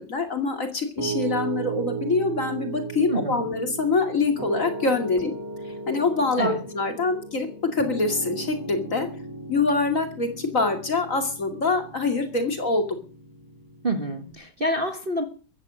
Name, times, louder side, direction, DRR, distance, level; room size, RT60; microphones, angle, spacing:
voice 1, 0.0-5.3 5.9-9.1 9.5-12.8, left 3 dB, 40° left, 2.8 m, -25 dB
Piano, 1.0-14.3, right 4 dB, 10° right, 2.3 m, -36 dB
voice 2, 3.1-3.4 6.4-6.6 13.8-15.2, right 1 dB, 30° right, 1.6 m, -27 dB
14.5 x 14.5 x 6.4 m
omnidirectional pair, 2.1 m